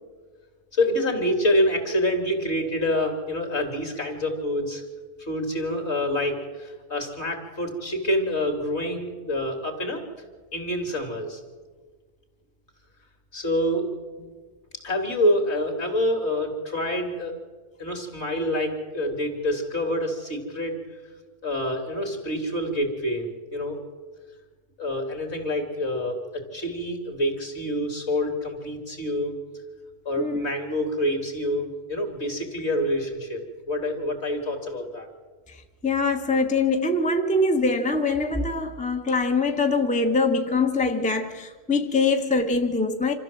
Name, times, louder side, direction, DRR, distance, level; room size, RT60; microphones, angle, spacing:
voice 1, 0.7-4.8 5.2-10.0 10.5-11.4 13.3-13.9 14.8-17.4 17.8-20.8 21.4-23.8 24.8-29.3 30.1-35.1, left 1 dB, 50° left, 3.6 m, -27 dB
voice 2, 35.8-43.1, left 3 dB, 5° left, 0.9 m, -23 dB
26.5 x 14.5 x 7.8 m
omnidirectional pair, 1.5 m